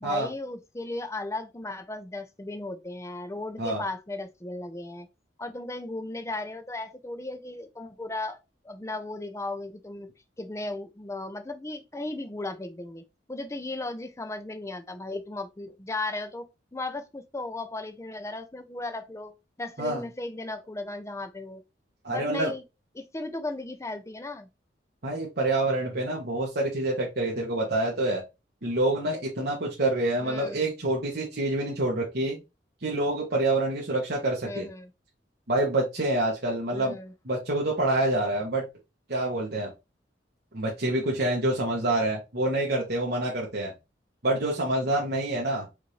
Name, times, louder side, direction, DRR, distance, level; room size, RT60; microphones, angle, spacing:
voice 1, 0.0-5.1 5.4-8.4 8.6-10.1 10.4-21.6 22.1-22.6 22.9-24.5 30.2-30.6 34.4-34.9 36.7-37.1, left 2 dB, 15° left, 0.6 m, -36 dB
voice 2, 22.0-22.5 25.0-28.2 28.6-32.4 32.8-34.7 35.5-37.0 37.2-38.6 39.1-39.7 40.5-43.7 44.2-45.7, right 2 dB, 60° right, 1.2 m, -27 dB
5.1 x 2.6 x 3.2 m
head